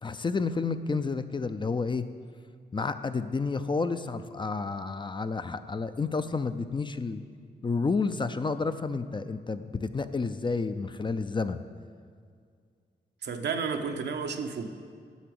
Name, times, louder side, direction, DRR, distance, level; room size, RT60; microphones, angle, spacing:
voice 1, 0.0-2.0 2.7-7.2 7.6-11.6, left 4 dB, 25° left, 10 dB, 0.4 m, -30 dB
voice 2, 13.2-14.7, right 5 dB, 80° right, 5 dB, 0.8 m, -32 dB
8.2 x 5.9 x 7.7 m, 2.1 s
cardioid pair, 80°, 18 cm